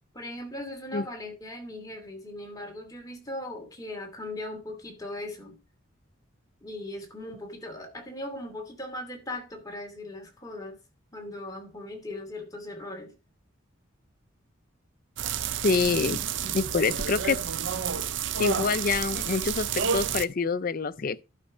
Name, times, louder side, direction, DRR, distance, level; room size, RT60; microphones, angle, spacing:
voice 1, 0.1-5.6 6.6-10.8 11.1-13.1, left 1 dB, 15° left, 2.6 m, -39 dB
sound 1, 15.2-20.3, right 7 dB, 55° right, 0.6 m, -30 dB
voice 2, 15.6-16.2 16.5-17.4 18.4-21.2, left 4 dB, 40° left, 0.5 m, -26 dB
11.5 x 5.4 x 5.0 m
head